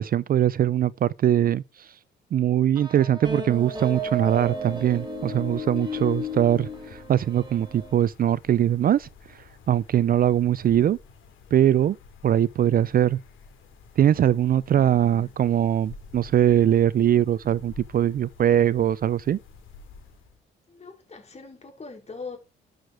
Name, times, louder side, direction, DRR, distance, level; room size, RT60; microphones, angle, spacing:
voice 1, 0.0-1.6 2.3-9.1 9.7-11.0 11.5-12.0 12.2-13.2 14.0-19.4, right 10 dB, 45° right, 0.4 m, -21 dB
sound 1, 2.8-7.9, equal, 20° right, 3.5 m, -33 dB
sound 2, 3.5-20.4, left 5 dB, 80° left, 3.3 m, -50 dB
voice 2, 14.7-15.3 20.7-22.4, left 4 dB, 35° left, 4.5 m, -42 dB
12.5 x 6.5 x 4.7 m
cardioid pair, 90°, 20 cm